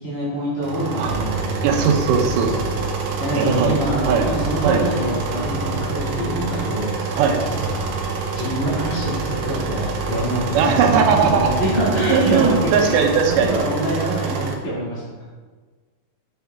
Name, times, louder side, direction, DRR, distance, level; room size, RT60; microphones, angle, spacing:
voice 1, 0.0-1.9 3.2-7.2 7.5-7.8 8.3-15.2, right 1 dB, 25° left, -10 dB, 1.8 m, -25 dB
sound 1, 0.6-14.5, right 4 dB, 70° right, 1.8 m, -27 dB
sound 2, 1.0-13.6, right 1 dB, 55° left, 2.0 m, -32 dB
voice 2, 1.6-2.6 3.4-3.8 4.1-4.3 4.6-4.8 7.2-7.4 10.5-11.5 12.1-13.6, right 6 dB, 85° right, 3 dB, 2.4 m, -18 dB
6.8 x 6.5 x 3.4 m, 1.4 s
omnidirectional pair, 3.7 m